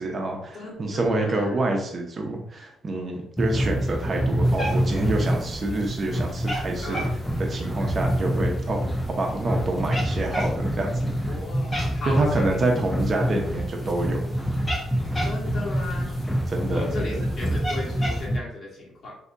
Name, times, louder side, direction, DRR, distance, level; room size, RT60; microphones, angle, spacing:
voice 1, 0.0-7.0 7.5-11.4 12.1-14.2 16.5-17.2, right 2 dB, 40° right, 1 dB, 0.8 m, -27 dB
voice 2, 0.5-1.6 6.8-7.1 11.3-12.9 15.2-16.1 16.7-19.2, left 2 dB, 60° left, -3 dB, 1.3 m, -36 dB
sound 1, 3.4-18.4, equal, 5° left, 0.6 m, -27 dB
Cat, 4.4-18.3, equal, 25° left, 0.9 m, -36 dB
3.3 x 2.8 x 2.6 m, 0.69 s
cardioid pair, 90°, 0 cm